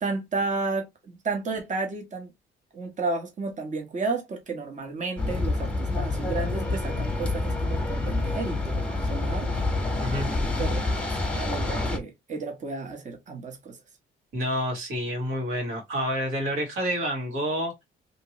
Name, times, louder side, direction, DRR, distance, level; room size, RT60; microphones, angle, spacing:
voice 1, 0.0-0.9 1.2-2.3 2.7-9.5 10.6-10.9 11.3-13.8, right 3 dB, 40° right, 1.0 m, -32 dB
sound 1, 5.2-12.0, left 2 dB, 5° left, 1.1 m, -27 dB
voice 2, 14.3-17.8, equal, 85° right, 1.6 m, -28 dB
2.9 x 2.8 x 2.9 m
cardioid pair, 90°, 20 cm